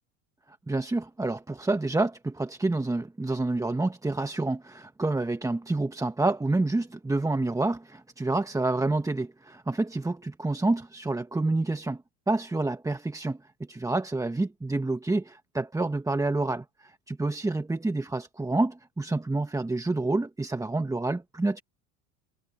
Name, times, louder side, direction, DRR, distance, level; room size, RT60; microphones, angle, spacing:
voice 1, 0.7-13.4 13.7-21.6, right 2 dB, 10° right, 1.3 m, -28 dB
supercardioid pair, 105°, 43 cm